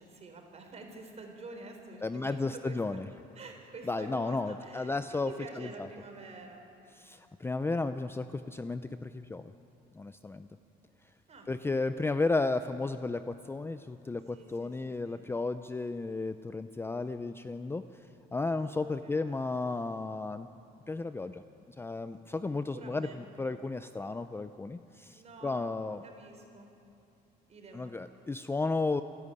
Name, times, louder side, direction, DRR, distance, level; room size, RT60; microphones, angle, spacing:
voice 1, 0.0-3.0 3.3-5.0 5.3-6.7 11.3-11.5 12.0-12.2 14.3-15.2 18.7-18.8 19.0-19.5 22.7-23.2 25.2-25.7 26.0-26.7 27.5-28.0, right 3 dB, 40° right, 4 dB, 3.9 m, -48 dB
voice 2, 2.0-3.1 3.9-5.3 5.6-5.9 7.0-9.5 9.9-10.5 11.5-17.8 18.3-20.5 20.9-21.4 21.8-26.0 27.7-29.0, left 3 dB, 15° left, 10 dB, 0.5 m, -33 dB
27.0 x 10.5 x 9.8 m, 2.7 s
cardioid pair, 110°, 17 cm